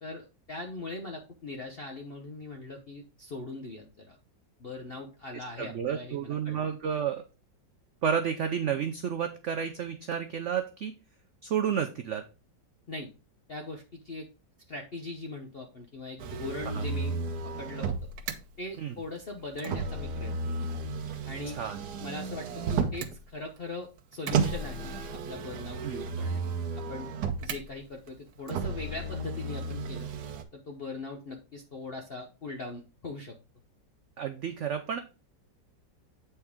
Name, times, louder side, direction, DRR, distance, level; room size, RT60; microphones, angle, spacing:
voice 1, 0.0-4.2 4.6-6.6 12.9-13.1 13.5-14.3 14.7-17.1 17.6-17.9 18.6-20.3 21.2-21.6 22.0-26.4 26.9-27.1 27.4-30.1 30.5-33.3, left 2 dB, 45° left, 2 dB, 0.8 m, -40 dB
voice 2, 5.3-7.3 8.0-10.9 11.4-12.3 16.7-16.9 18.8-18.9 21.5-21.8 25.8-26.0 34.2-35.0, right 8 dB, 90° right, 7 dB, 0.6 m, -31 dB
Motor vehicle (road), 16.2-18.4 19.6-23.2 24.3-27.6 28.5-30.4, right 4 dB, 65° right, 1.3 m, -33 dB
8.1 x 4.3 x 3.5 m, 0.32 s
omnidirectional pair, 2.0 m